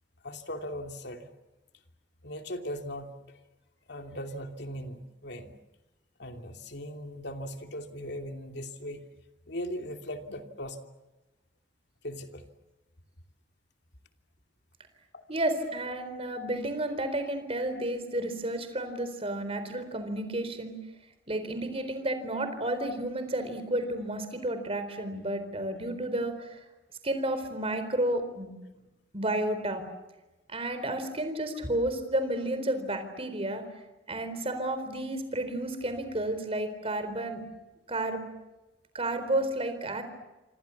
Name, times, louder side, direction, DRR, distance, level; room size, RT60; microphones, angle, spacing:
voice 1, 0.2-1.3 2.2-3.1 3.9-5.5 6.2-9.0 9.5-10.8 12.0-12.5 15.1-15.2, equal, 60° left, 5 dB, 2.9 m, -38 dB
voice 2, 15.3-20.8 21.3-26.6 27.0-28.5 29.1-29.8 30.5-33.6 34.1-37.4 37.9-38.3 38.9-40.0, right 1 dB, 30° right, 9 dB, 4.1 m, -31 dB
27.0 x 27.0 x 7.2 m, 1.0 s
head